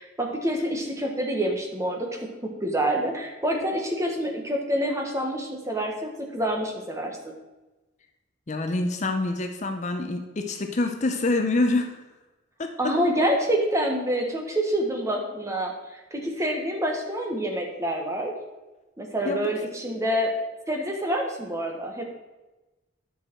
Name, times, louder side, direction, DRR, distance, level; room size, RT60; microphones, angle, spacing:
voice 1, 0.0-2.3 2.6-7.3 12.8-18.3 19.0-20.3 20.7-22.1, right 1 dB, 15° right, 1 dB, 1.2 m, -27 dB
voice 2, 8.5-12.0 12.6-12.9 19.2-19.5, left 2 dB, 35° left, 5 dB, 0.6 m, -26 dB
10.5 x 6.4 x 4.5 m, 1.1 s
head